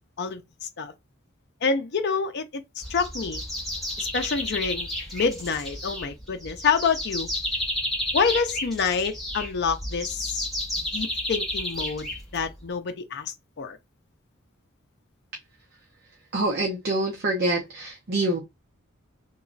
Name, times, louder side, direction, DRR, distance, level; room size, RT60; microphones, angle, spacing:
voice 1, 0.2-0.9 1.6-3.4 4.0-7.3 8.1-10.5 10.8-12.1 12.3-13.8, left 5 dB, 55° left, 0.5 m, -27 dB
sound 1, 2.8-12.6, left 1 dB, ahead, 1.2 m, -32 dB
voice 2, 16.3-18.4, right 2 dB, 50° right, 0.6 m, -26 dB
3.0 x 2.3 x 2.5 m
head